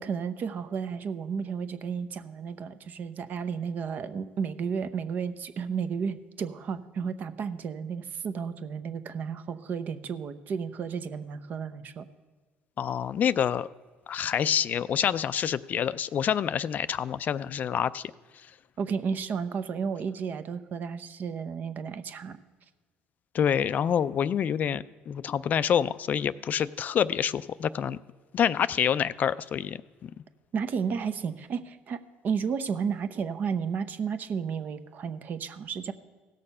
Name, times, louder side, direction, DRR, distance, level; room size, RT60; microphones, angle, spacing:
voice 1, 0.0-12.1 18.8-22.4 30.5-35.9, right 6 dB, 50° right, 12 dB, 0.7 m, -32 dB
voice 2, 12.8-13.7 14.1-18.0 23.3-28.0 28.3-30.1, left 8 dB, 45° left, 16 dB, 0.4 m, -27 dB
16.5 x 6.6 x 5.5 m, 1.4 s
supercardioid pair, 95°, 4 cm